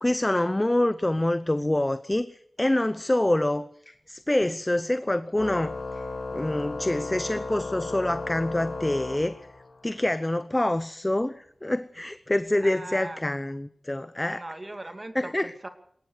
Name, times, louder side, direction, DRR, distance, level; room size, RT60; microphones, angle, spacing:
voice 1, 0.0-6.0 6.3-9.4 9.8-14.4 15.1-15.5, left 1 dB, 20° left, 13 dB, 0.8 m, -26 dB
Organ, 5.4-9.9, left 3 dB, 55° left, 3.4 m, -35 dB
voice 2, 12.6-13.2 14.3-15.7, right 1 dB, 30° right, 8 dB, 2.6 m, -39 dB
21.0 x 19.0 x 6.6 m, 0.63 s
wide cardioid pair, 95°, 0 cm